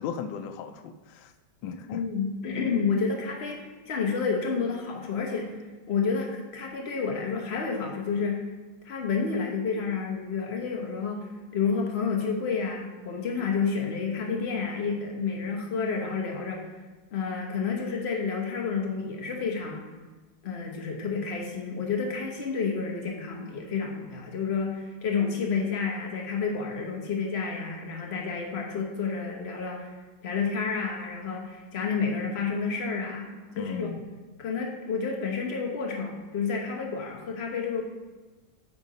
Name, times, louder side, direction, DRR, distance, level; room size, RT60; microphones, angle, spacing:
voice 1, 0.0-1.3 1.6-2.0 33.5-34.1, left 7 dB, 80° left, 9 dB, 1.3 m, -36 dB
voice 2, 1.9-5.5 5.9-8.5 8.8-16.7 17.1-19.8 20.4-30.0 30.2-34.0 34.4-37.8, left 5 dB, 45° left, 1 dB, 0.9 m, -30 dB
8.1 x 3.8 x 5.0 m, 1.2 s
omnidirectional pair, 2.1 m